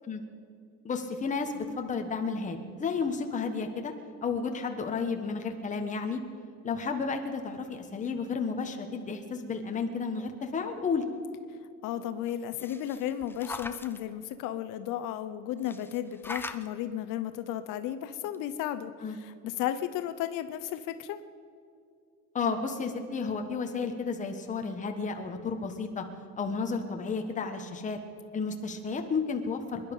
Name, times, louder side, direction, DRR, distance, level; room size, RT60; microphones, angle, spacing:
voice 1, 0.8-3.9 4.2-6.2 6.6-11.0 19.0-19.2 22.3-26.0 26.4-28.0 28.3-29.8, left 5 dB, 25° left, 4 dB, 1.3 m, -32 dB
voice 2, 11.8-21.2 28.4-28.5, left 11 dB, 80° left, 11 dB, 0.8 m, -34 dB
sound 1, 12.3-14.0 15.6-16.7 17.9-18.0 18.3-18.4, left 3 dB, 5° left, 0.4 m, -41 dB
24.0 x 11.0 x 5.4 m, 2.3 s
cardioid pair, 160°, 31 cm